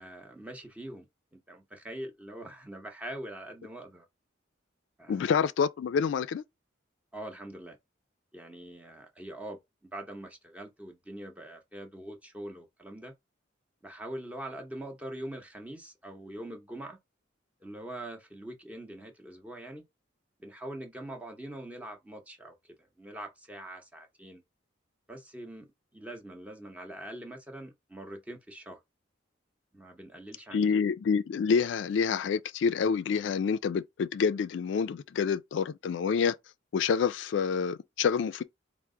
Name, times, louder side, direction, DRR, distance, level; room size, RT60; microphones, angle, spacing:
voice 1, 0.0-4.1 5.0-5.3 7.1-7.8 8.3-9.6 9.9-13.1 13.8-17.0 17.6-19.8 20.4-24.4 25.1-25.7 25.9-28.8 29.7-30.6, right 1 dB, 5° right, 0.7 m, -43 dB
voice 2, 5.1-6.4 30.5-36.3 36.7-38.4, left 6 dB, 70° left, 0.3 m, -27 dB
4.5 x 2.0 x 3.6 m
head